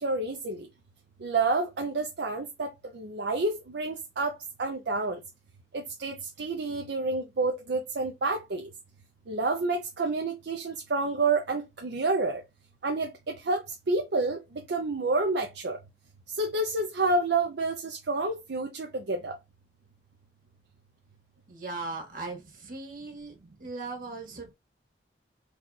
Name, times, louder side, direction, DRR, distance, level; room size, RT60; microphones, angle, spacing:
voice 1, 0.0-0.6 1.2-2.7 2.9-4.3 4.6-5.2 5.7-8.7 9.3-12.4 12.8-14.4 14.7-15.8 16.4-19.4, right 3 dB, 70° right, 0.5 m, -29 dB
voice 2, 21.5-23.3 23.6-24.5, right 3 dB, 55° right, 1.6 m, -38 dB
4.0 x 2.4 x 4.0 m
head